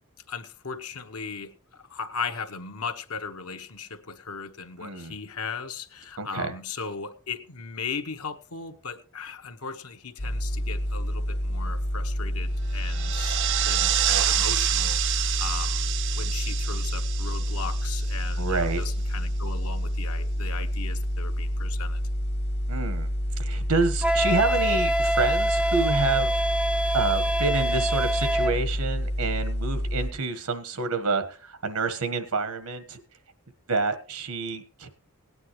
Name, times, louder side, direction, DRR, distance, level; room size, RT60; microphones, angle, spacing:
voice 1, 0.3-15.9 16.2-22.0, left 5 dB, 80° left, 6 dB, 1.1 m, -37 dB
voice 2, 4.8-5.2 6.2-6.5 18.4-18.8 22.7-23.1 23.4-26.4 26.9-33.0 33.7-34.9, right 3 dB, 85° right, 10 dB, 1.4 m, -28 dB
sound 1, 10.2-30.1, equal, 50° left, 1.1 m, -28 dB
sound 2, 12.7-18.6, right 12 dB, 55° right, 0.5 m, -28 dB
Wind instrument woodwind instrument, 24.0-28.6, right 1 dB, 5° right, 0.5 m, -25 dB
17.5 x 9.5 x 3.1 m, 0.35 s
head